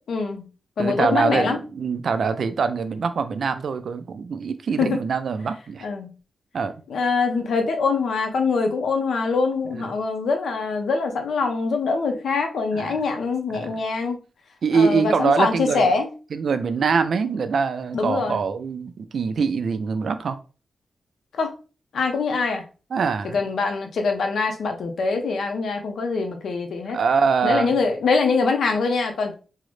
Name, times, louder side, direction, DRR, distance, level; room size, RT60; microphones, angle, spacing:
voice 1, 0.1-0.5 0.8-1.6 4.8-5.0 5.8-6.1 6.9-14.2 14.7-16.1 17.9-18.4 21.3-21.5 21.9-22.6 23.3-27.0 27.4-29.3, left 4 dB, 80° left, 0.6 m, -23 dB
voice 2, 0.8-5.9 6.5-6.7 9.7-9.9 12.7-13.0 13.5-13.7 14.6-15.8 16.3-20.4 22.9-23.4 26.9-27.7, right 5 dB, 65° right, 0.3 m, -23 dB
3.7 x 2.0 x 3.1 m
wide cardioid pair, 145°, 0 cm